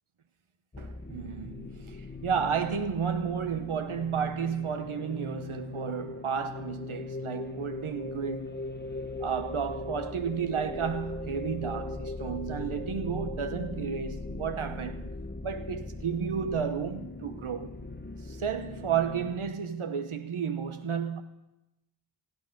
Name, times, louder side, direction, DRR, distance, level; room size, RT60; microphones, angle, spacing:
sound 1, 0.7-19.5, left 3 dB, 20° left, 1.2 m, -39 dB
voice 1, 0.8-8.6 9.2-15.1 15.4-17.8 18.2-21.2, right 7 dB, 90° right, 0.9 m, -32 dB
27.5 x 9.3 x 5.1 m
cardioid pair, 40°, 48 cm